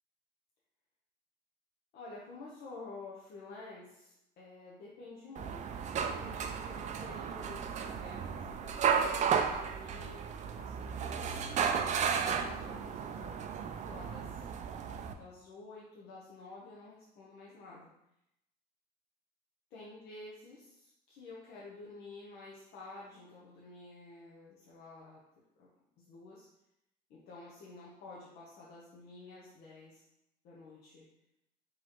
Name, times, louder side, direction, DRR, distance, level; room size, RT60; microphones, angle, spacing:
voice 1, 1.9-13.4 13.8-14.5 15.1-17.9 19.7-25.2 25.6-25.7 26.0-26.5 27.1-30.0 30.4-31.1, left 3 dB, 80° left, -5 dB, 0.8 m, -51 dB
sound 1, 5.4-15.1, right 7 dB, 45° right, 0.4 m, -34 dB
4.7 x 3.0 x 2.9 m, 0.82 s
cardioid pair, 110°, 17 cm